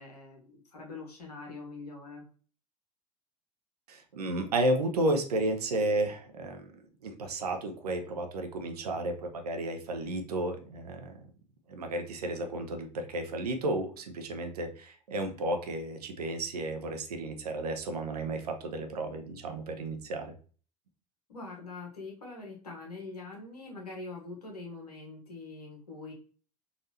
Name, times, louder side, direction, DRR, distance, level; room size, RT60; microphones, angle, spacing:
voice 1, 0.0-2.2 21.3-26.1, left 3 dB, 85° left, 0 dB, 1.1 m, -43 dB
voice 2, 3.9-11.2 11.7-20.3, right 1 dB, 80° right, 5 dB, 0.6 m, -32 dB
4.0 x 2.6 x 2.8 m, 0.41 s
figure-of-eight pair, 75°, 20 cm